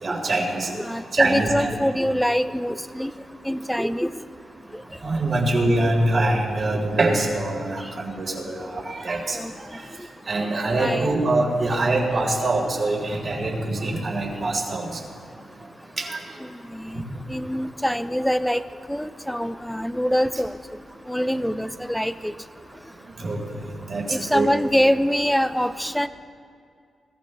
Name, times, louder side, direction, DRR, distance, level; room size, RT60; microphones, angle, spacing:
voice 1, 0.0-0.7 1.1-1.7 5.0-9.4 9.7-9.8 10.3-15.0 16.0-16.2 16.9-17.0 23.2-23.4 23.9-24.5, right 2 dB, 55° right, -2 dB, 4.1 m, -24 dB
voice 2, 0.7-3.1 3.4-4.1 9.3-9.5 10.8-11.2 16.7-17.0 17.3-18.6 18.9-20.6 21.1-22.3 24.1-26.1, equal, 5° left, 11 dB, 0.8 m, -24 dB
21.5 x 14.5 x 3.3 m, 2.3 s
cardioid pair, 50°, 0 cm